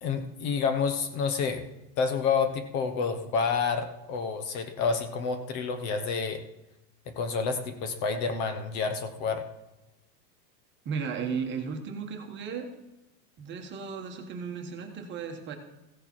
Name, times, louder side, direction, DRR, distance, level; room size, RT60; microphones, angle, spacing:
voice 1, 0.0-1.7 2.0-6.4 7.1-9.4, left 5 dB, 40° left, 8 dB, 1.0 m, -29 dB
voice 2, 10.8-12.7 13.4-15.6, right 6 dB, 25° right, 4 dB, 1.2 m, -35 dB
15.0 x 6.7 x 4.4 m, 0.97 s
supercardioid pair, 160°, 46 cm